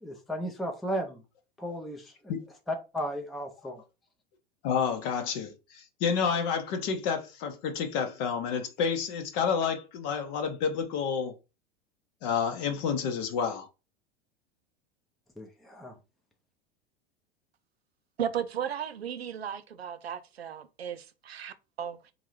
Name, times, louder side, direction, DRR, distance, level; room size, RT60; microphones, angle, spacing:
voice 1, 0.0-1.2 1.6-2.3 2.7-3.8 15.4-15.9, equal, ahead, 0.5 m, -35 dB
voice 2, 4.6-11.3 12.2-13.7, left 6 dB, 45° left, 0.7 m, -29 dB
voice 3, 18.2-22.1, right 8 dB, 85° right, 0.5 m, -35 dB
3.8 x 2.6 x 3.0 m
figure-of-eight pair, 85°, 30 cm